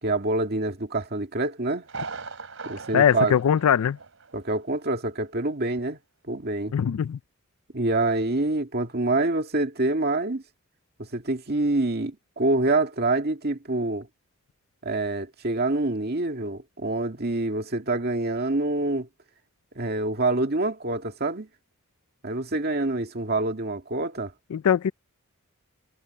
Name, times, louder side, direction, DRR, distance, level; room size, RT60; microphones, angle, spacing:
voice 1, 0.0-1.8 2.7-3.4 4.3-6.0 6.3-6.7 7.7-10.4 11.0-14.1 14.8-19.1 19.8-21.5 22.2-24.3, right 2 dB, 45° right, 2.1 m, -26 dB
Thunder, 1.8-4.4 4.7-4.8 5.3-5.4, right 4 dB, 65° right, 3.1 m, -39 dB
voice 2, 2.9-4.0 6.7-7.2 24.5-24.9, left 8 dB, 80° left, 0.4 m, -21 dB
head